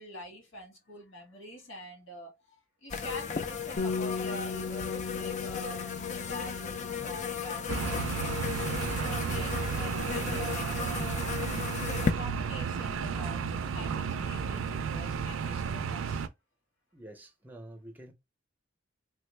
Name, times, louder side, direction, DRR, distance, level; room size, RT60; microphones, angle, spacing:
voice 1, 0.0-2.4 2.8-8.4 8.8-11.3 11.7-16.3, equal, 85° left, 1.6 m, -45 dB
sound 1, 2.9-12.1, left 6 dB, 35° left, 0.3 m, -35 dB
Bass guitar, 3.8-8.5 8.7-10.0, left 4 dB, 65° left, 0.8 m, -39 dB
sound 2, 7.7-16.3, right 6 dB, 85° right, 0.4 m, -33 dB
voice 2, 16.9-18.1, right 1 dB, 10° right, 0.6 m, -48 dB
3.6 x 2.0 x 3.1 m
head